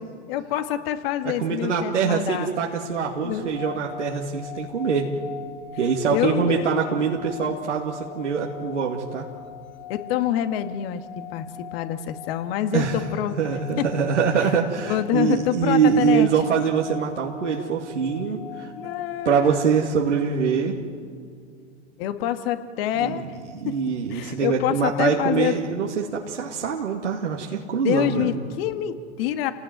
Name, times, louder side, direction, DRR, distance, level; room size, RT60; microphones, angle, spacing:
voice 1, 0.0-2.5 3.2-3.5 6.1-6.7 9.9-11.5 11.7-13.8 14.4-14.5 14.8-16.3 18.8-19.6 22.0-23.2 23.7-23.8 24.1-25.5 27.8-29.5, left 11 dB, 55° left, 8 dB, 2.1 m, -26 dB
voice 2, 1.4-5.1 5.8-9.3 12.7-13.0 13.3-18.7 19.2-20.8 23.0-23.2 23.6-28.3, right 6 dB, 90° right, -2 dB, 2.5 m, -24 dB
sound 1, 3.3-20.4, left 9 dB, 70° left, 2.4 m, -42 dB
28.5 x 18.5 x 9.4 m, 2.2 s
hypercardioid pair, 105°, 35 cm